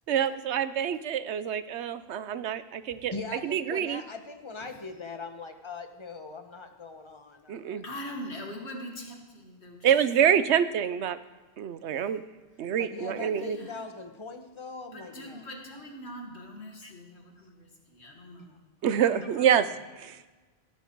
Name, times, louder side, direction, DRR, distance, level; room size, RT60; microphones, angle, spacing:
voice 1, 0.1-3.1 3.4-4.0 7.5-7.8 9.8-11.2 11.6-12.2 12.6-13.6 18.8-19.6 20.0-20.2, right 9 dB, 90° right, 13 dB, 1.0 m, -26 dB
voice 2, 3.1-7.8 12.8-15.4 16.8-16.9 18.4-18.6 19.1-19.2, left 4 dB, 25° left, 6 dB, 1.2 m, -41 dB
voice 3, 7.8-10.4 11.9-12.0 12.6-12.7 13.1-13.9 14.9-19.6, left 1 dB, 75° left, 2 dB, 2.2 m, -43 dB
16.0 x 10.0 x 4.6 m, 1.3 s
omnidirectional pair, 1.1 m